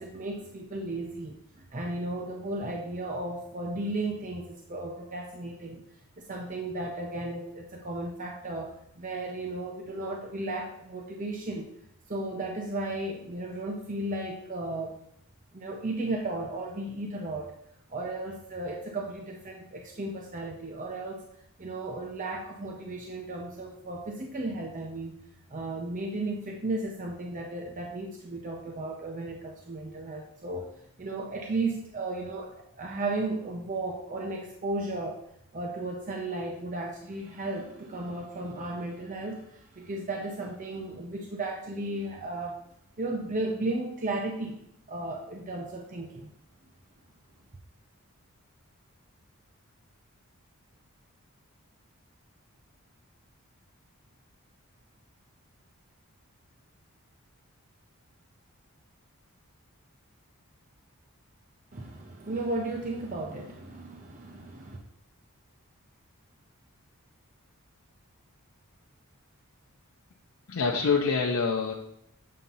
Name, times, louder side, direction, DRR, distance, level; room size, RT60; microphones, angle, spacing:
voice 1, 0.0-5.8 6.2-11.7 12.1-15.0 15.5-17.5 17.9-21.2 21.6-25.2 25.5-30.7 31.0-35.2 35.5-42.6 43.0-44.6 44.9-46.3 61.7-64.8, right 2 dB, 35° right, 1 dB, 0.6 m, -35 dB
voice 2, 70.5-71.7, left 5 dB, 70° left, 0 dB, 0.6 m, -25 dB
7.5 x 2.8 x 5.4 m, 0.76 s
head